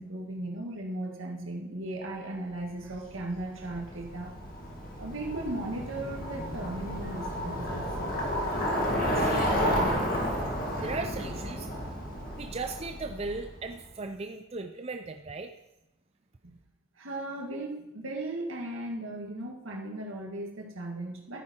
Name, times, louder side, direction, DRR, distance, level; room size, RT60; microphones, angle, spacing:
voice 1, 0.0-4.3 5.0-7.9 16.4-16.6 17.0-21.4, right 1 dB, 75° right, 0 dB, 2.1 m, -37 dB
Bicycle, 2.8-13.7, equal, 45° left, 2.1 m, -32 dB
voice 2, 8.7-9.9 10.7-11.7 12.4-15.5, right 3 dB, 30° right, 5 dB, 0.5 m, -37 dB
13.0 x 9.4 x 4.5 m, 0.94 s
head